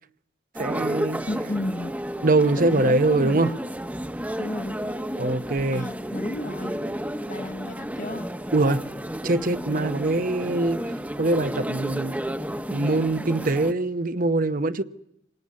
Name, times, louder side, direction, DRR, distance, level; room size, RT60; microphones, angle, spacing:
sound 1, 0.5-13.7, right 1 dB, 10° right, 1.0 m, -32 dB
voice 1, 0.6-1.2 2.2-3.5 5.2-5.9 8.5-8.8 9.2-10.8 11.2-12.2 12.7-14.8, right 2 dB, 50° right, 1.0 m, -23 dB
voice 2, 1.3-2.0 2.6-3.6 4.4-5.0 5.7-6.8 7.3-8.3, left 1 dB, 45° left, 1.2 m, -33 dB
26.5 x 19.5 x 9.6 m
head